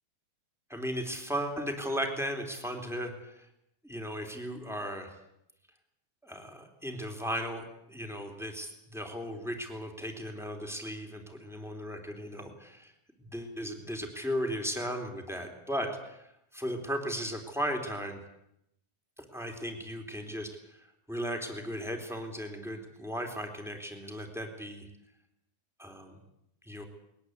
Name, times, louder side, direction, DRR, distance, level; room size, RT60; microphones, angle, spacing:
voice 1, 0.7-3.5 3.8-5.1 6.2-12.9 13.2-16.3 16.5-18.2 19.2-24.9 25.8-26.2 26.6-26.8, equal, ahead, 3 dB, 3.2 m, -36 dB
21.5 x 20.0 x 8.2 m, 0.81 s
omnidirectional pair, 4.2 m